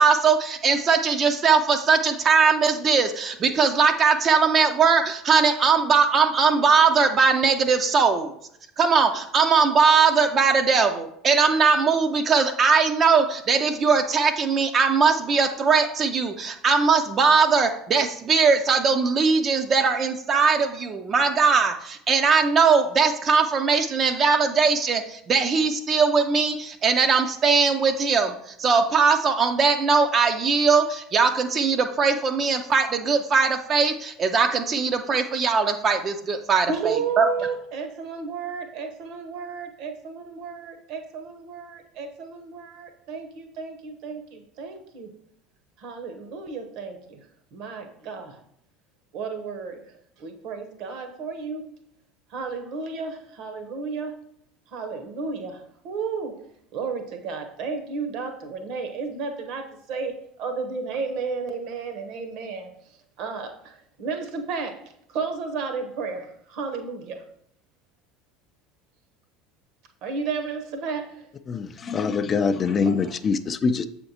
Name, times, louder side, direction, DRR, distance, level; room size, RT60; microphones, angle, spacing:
voice 1, 0.0-8.3 8.8-37.3, right 5 dB, 35° right, 6 dB, 0.5 m, -20 dB
voice 2, 36.7-45.1 45.8-47.2 47.5-48.4 49.1-49.8 50.2-51.7 52.3-54.2 54.7-56.4 56.7-62.7 63.2-64.8 65.1-67.2 70.0-71.3 72.9-73.0, right 5 dB, 55° right, 6 dB, 1.0 m, -33 dB
voice 3, 71.5-73.9, left 5 dB, 35° left, 11 dB, 0.4 m, -24 dB
7.7 x 4.3 x 2.8 m, 0.72 s
figure-of-eight pair, 70°, 0 cm